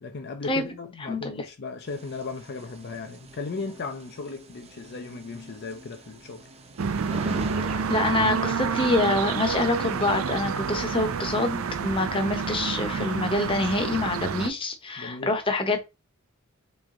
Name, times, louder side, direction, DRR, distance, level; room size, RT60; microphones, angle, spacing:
voice 1, 0.0-6.5 15.0-15.3, left 4 dB, 55° left, 0.5 m, -36 dB
voice 2, 1.1-1.4 7.7-15.8, left 2 dB, 25° left, 0.8 m, -26 dB
sound 1, 1.9-11.9, right 2 dB, 30° right, 0.7 m, -43 dB
sound 2, 6.8-14.5, right 5 dB, 80° right, 0.5 m, -28 dB
3.3 x 3.2 x 3.7 m
head